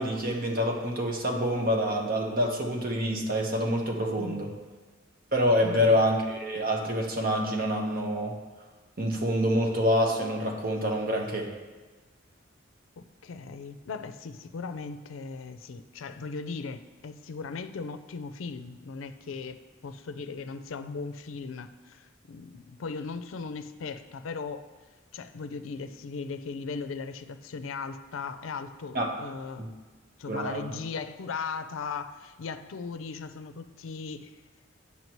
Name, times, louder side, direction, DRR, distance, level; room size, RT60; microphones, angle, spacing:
voice 1, 0.0-4.5 5.3-8.3 9.0-11.5 28.9-29.1 29.6-29.7 30.3-30.7, equal, 45° right, 0 dB, 1.1 m, -26 dB
voice 2, 4.2-4.5 5.6-6.0 13.0-19.6 19.8-24.7 25.1-29.6 30.2-34.3, left 4 dB, 85° left, 10 dB, 0.4 m, -38 dB
9.1 x 5.7 x 3.0 m, 1.4 s
head